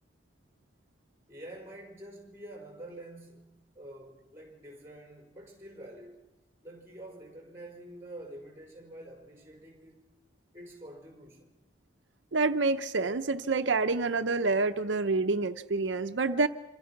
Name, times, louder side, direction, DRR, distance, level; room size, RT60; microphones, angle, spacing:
voice 1, 1.3-6.3 6.6-10.1 10.5-11.7, right 1 dB, 15° right, 5.2 m, -47 dB
voice 2, 12.3-16.5, right 3 dB, 80° right, 0.8 m, -27 dB
27.0 x 26.0 x 6.0 m
head